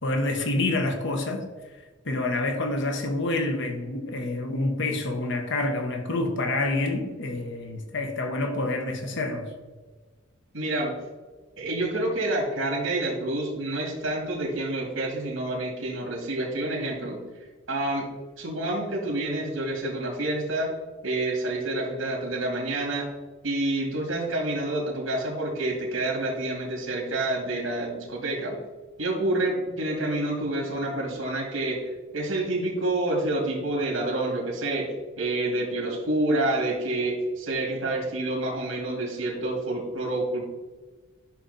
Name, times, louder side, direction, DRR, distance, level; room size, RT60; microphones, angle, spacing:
voice 1, 0.0-1.5 2.0-9.5, left 2 dB, 65° left, 1.3 m, -27 dB
voice 2, 10.5-10.9 11.6-17.2 17.7-18.1 18.4-20.7 21.0-23.1 23.4-28.6 29.0-40.5, right 2 dB, 75° right, 2.3 m, -28 dB
11.5 x 5.9 x 4.2 m
head